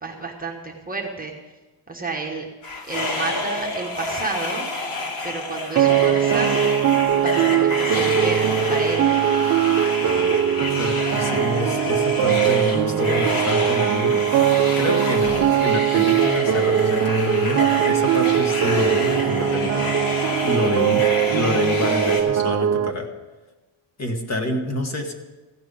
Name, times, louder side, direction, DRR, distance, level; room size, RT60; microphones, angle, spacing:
voice 1, 0.0-1.3 1.9-2.5 2.9-4.7 5.2-6.6 7.2-9.1, right 3 dB, 15° right, 0 dB, 1.1 m, -31 dB
sound 1, 2.6-22.2, left 2 dB, 75° left, 2.6 m, -28 dB
sound 2, 5.8-22.9, right 9 dB, 35° right, 0.5 m, -20 dB
voice 2, 10.8-14.2 14.8-23.1 24.0-25.1, left 1 dB, 30° left, 3 dB, 1.5 m, -27 dB
15.5 x 6.1 x 8.5 m, 1.1 s
cardioid pair, 170°, 50 cm